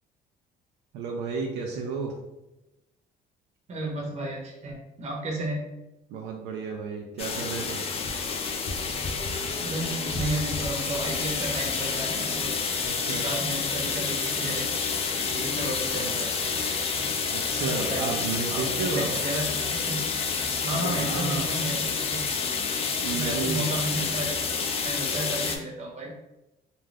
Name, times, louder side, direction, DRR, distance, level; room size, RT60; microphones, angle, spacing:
voice 1, 0.9-2.1 6.1-7.8 12.8-13.2 15.9-16.2 17.3-19.1 20.7-21.5 23.0-23.7, right 4 dB, 85° right, 1 dB, 0.4 m, -32 dB
voice 2, 3.7-5.6 9.4-12.6 13.1-14.7 15.3-16.3 17.6-18.2 18.5-20.0 20.6-22.2 23.1-24.4 24.8-26.1, right 1 dB, 40° right, -2 dB, 0.8 m, -33 dB
sound 1, 7.2-25.6, left 5 dB, 35° left, 0.4 m, -29 dB
2.5 x 2.3 x 3.2 m, 0.95 s
cardioid pair, 110°, 17 cm